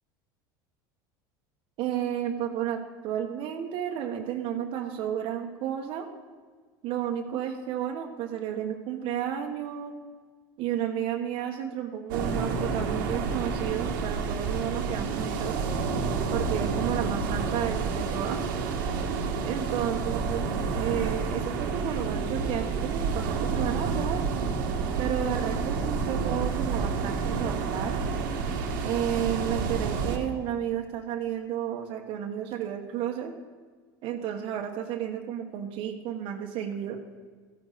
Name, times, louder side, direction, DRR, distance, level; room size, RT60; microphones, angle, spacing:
voice 1, 1.8-6.1 6.8-9.9 10.6-15.5 16.3-18.4 19.4-20.5 20.7-24.2 25.0-28.0 28.8-33.3 34.0-37.0, right 10 dB, 60° right, 3 dB, 1.3 m, -32 dB
sound 1, 12.1-30.2, right 5 dB, 90° right, 1.7 m, -29 dB
14.5 x 10.0 x 4.2 m, 1.5 s
supercardioid pair, 110°, 11 cm